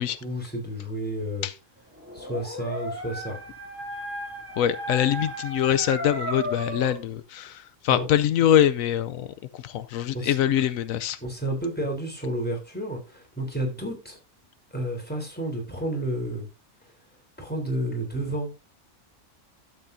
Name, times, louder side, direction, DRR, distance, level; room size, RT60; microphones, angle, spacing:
voice 1, 0.2-1.5 2.1-3.4 7.9-8.1 10.1-10.3 11.2-14.2 14.7-16.5 17.4-18.5, right 1 dB, 5° left, 3.5 m, -31 dB
Dog, 2.0-7.0, equal, 10° right, 2.8 m, -35 dB
voice 2, 4.6-9.3 9.6-11.2, left 10 dB, 85° left, 1.1 m, -24 dB
12.0 x 8.6 x 2.7 m
omnidirectional pair, 1.4 m